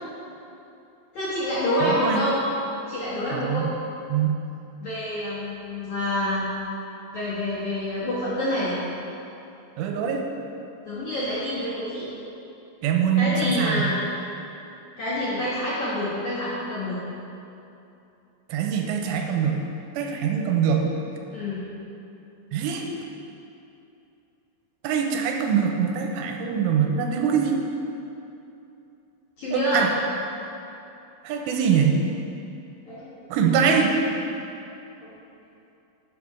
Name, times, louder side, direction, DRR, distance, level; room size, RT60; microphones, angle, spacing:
voice 1, 1.1-2.4 2.9-3.7 4.8-6.5 7.1-8.8 10.8-12.1 13.2-13.9 15.0-17.0 21.3-21.6 29.4-29.8 32.9-33.0 35.0-35.2, left 1 dB, 65° left, -10 dB, 1.8 m, -27 dB
voice 2, 1.8-2.2 3.3-3.7 4.1-4.4 9.8-10.2 12.8-13.8 18.5-19.6 19.9-20.9 22.5-22.9 24.8-27.6 29.5-29.9 31.2-32.0 33.3-33.9, right 7 dB, 85° right, 2 dB, 3.0 m, -23 dB
9.5 x 6.3 x 5.0 m, 2.8 s
omnidirectional pair, 5.9 m